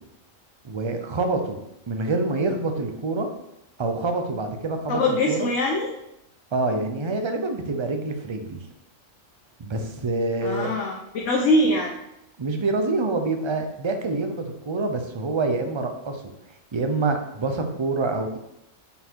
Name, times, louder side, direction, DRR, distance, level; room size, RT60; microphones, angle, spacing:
voice 1, 0.6-1.6 1.9-3.3 3.8-5.5 6.5-8.6 9.6-10.7 12.4-16.2 16.7-18.4, right 3 dB, 30° right, 5 dB, 0.6 m, -26 dB
voice 2, 4.9-5.9 10.4-11.9, left 1 dB, 70° left, 0 dB, 1.2 m, -22 dB
6.9 x 4.6 x 4.6 m, 0.86 s
omnidirectional pair, 1.3 m